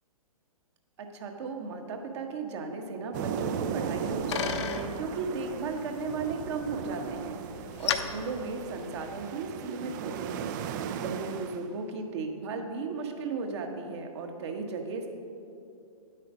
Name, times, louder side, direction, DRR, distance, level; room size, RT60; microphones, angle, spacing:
voice 1, 1.0-15.1, right 4 dB, 50° right, 4 dB, 1.3 m, -36 dB
sound 1, 3.1-11.7, right 8 dB, 30° right, 0.4 m, -36 dB
Bicycle, 3.6-9.4, left 8 dB, 50° left, 0.8 m, -37 dB
10.5 x 8.3 x 4.9 m, 2.6 s
figure-of-eight pair, 120°, 19 cm